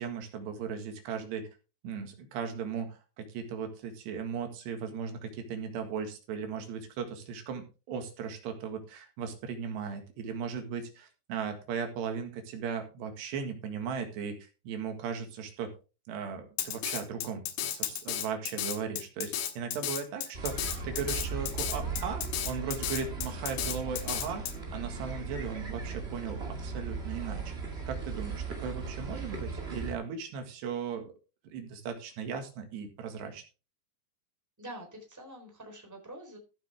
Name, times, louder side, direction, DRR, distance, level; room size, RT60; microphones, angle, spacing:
voice 1, 0.0-1.5 1.8-15.7 16.1-27.6 27.9-31.1 31.4-33.4, right 6 dB, 85° right, 5 dB, 4.0 m, -37 dB
Drum kit, 16.6-24.5, left 10 dB, 75° left, 3.3 m, -33 dB
sound 1, 20.3-29.9, right 4 dB, 25° right, 1.5 m, -37 dB
voice 2, 34.6-36.4, right 1 dB, 5° right, 2 dB, 3.5 m, -46 dB
14.5 x 8.3 x 3.5 m, 0.31 s
omnidirectional pair, 4.8 m